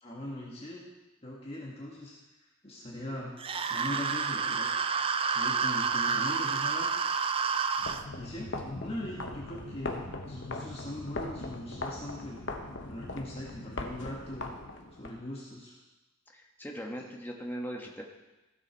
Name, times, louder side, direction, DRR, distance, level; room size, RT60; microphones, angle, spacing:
voice 1, 0.0-0.8 1.2-2.1 2.6-3.3 3.6-4.7 5.0-6.9 8.2-12.4 12.9-14.5 14.9-15.7, left 1 dB, 30° left, -4 dB, 1.6 m, -40 dB
sound 1, 3.4-8.0, right 5 dB, 25° right, 0.4 m, -29 dB
sound 2, 7.8-15.1, left 2 dB, 60° left, 1.0 m, -40 dB
voice 2, 16.3-18.0, equal, 10° left, 0 dB, 1.3 m, -39 dB
15.0 x 6.8 x 4.6 m, 1.1 s
head